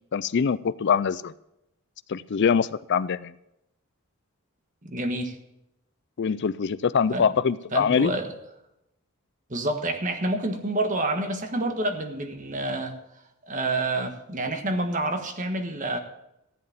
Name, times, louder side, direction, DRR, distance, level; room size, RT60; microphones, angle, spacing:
voice 1, 0.1-1.3 2.1-3.3 6.2-8.1, left 6 dB, 50° left, 16 dB, 0.4 m, -23 dB
voice 2, 4.8-5.3 7.1-7.3 7.7-8.3 9.5-13.0 13.5-16.0, right 2 dB, 35° right, 6 dB, 1.4 m, -28 dB
14.5 x 7.8 x 7.1 m, 0.85 s
head